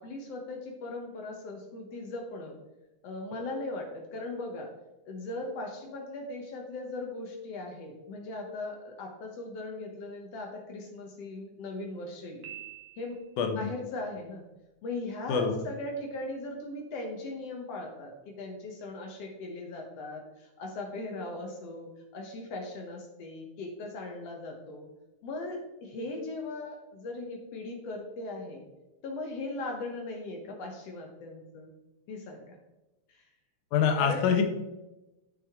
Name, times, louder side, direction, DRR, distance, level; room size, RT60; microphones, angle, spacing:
voice 1, 0.0-2.6 3.0-4.7 5.1-12.5 13.0-13.2 13.5-14.4 14.8-24.9 25.2-28.7 29.0-31.7 32.1-32.6 33.1-33.2 34.0-34.3, left 2 dB, 65° left, 2 dB, 1.9 m, -39 dB
Piano, 12.4-13.5, right 13 dB, 70° right, 2.7 m, -46 dB
voice 2, 13.4-13.7 15.3-15.5 33.7-34.4, left 6 dB, 85° left, 5 dB, 2.5 m, -25 dB
9.6 x 6.6 x 3.6 m, 1.0 s
omnidirectional pair, 3.5 m